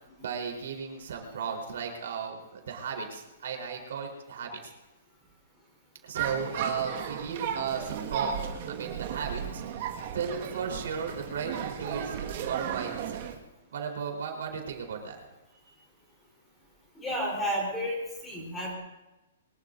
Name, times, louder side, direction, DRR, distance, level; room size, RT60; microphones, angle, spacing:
voice 1, 0.2-4.6 6.0-8.4 8.7-9.6 10.1-13.3 13.7-15.2, right 6 dB, 60° right, 2 dB, 4.0 m, -35 dB
sound 1, 6.1-13.4, right 8 dB, 35° right, 1.8 m, -35 dB
voice 2, 17.0-18.0 18.2-18.7, equal, 10° left, -3 dB, 4.0 m, -31 dB
24.0 x 21.5 x 2.7 m, 1.0 s
hypercardioid pair, 175°, 0 cm